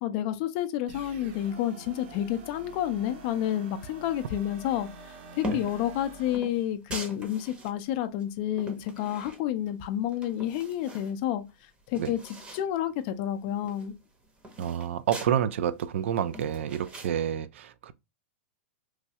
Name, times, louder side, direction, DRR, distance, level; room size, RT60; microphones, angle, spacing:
voice 1, 0.0-11.4 11.9-13.9, left 11 dB, 40° left, 0.4 m, -30 dB
sound 1, 0.9-6.4, right 3 dB, 55° right, 0.7 m, -47 dB
sound 2, 5.4-5.8 6.3-7.7 8.2-9.7 10.1-11.1 11.5-11.6 11.8-12.7 13.0-13.1 13.4-15.3 15.8-17.1, equal, 15° right, 0.7 m, -41 dB
voice 2, 14.6-17.9, right 9 dB, 75° right, 0.4 m, -29 dB
3.1 x 2.3 x 2.7 m
supercardioid pair, 150°, 7 cm